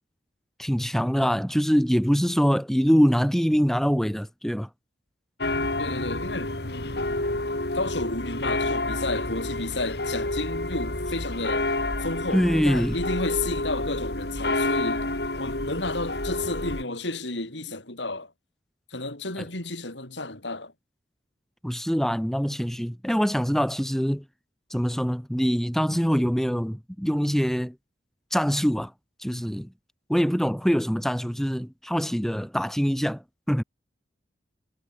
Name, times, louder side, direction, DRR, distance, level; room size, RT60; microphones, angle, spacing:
voice 1, 0.6-4.7 12.3-13.0 21.6-24.2 24.7-27.7 28.3-28.9 29.2-29.7 30.1-33.2 33.5-33.6, equal, ahead, 1.5 m, -24 dB
sound 1, 5.4-16.8, left 2 dB, 60° left, 3.2 m, -29 dB
voice 2, 5.8-6.9 7.7-11.7 12.0-15.1 15.4-18.3 18.9-20.7, left 2 dB, 80° left, 6.3 m, -32 dB
head